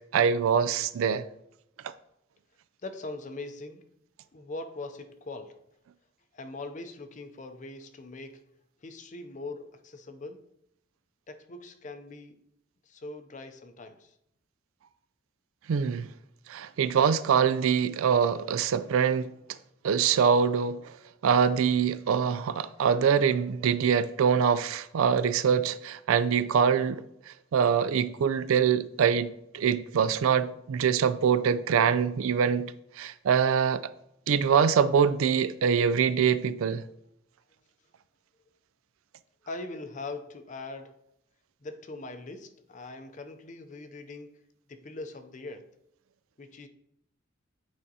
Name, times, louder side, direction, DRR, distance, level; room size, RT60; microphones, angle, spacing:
voice 1, 0.1-1.2 1.8-1.9 15.7-16.1 16.5-19.6 19.8-20.9 21.2-33.8 34.3-36.8, right 7 dB, 80° right, 0.4 m, -24 dB
voice 2, 2.8-3.9 4.3-5.6 6.3-8.4 8.8-10.5 11.3-12.5 12.9-14.1 39.5-40.9 41.6-44.4 44.7-45.7 46.4-46.7, left 2 dB, 35° left, 0.5 m, -41 dB
9.1 x 4.9 x 2.8 m
head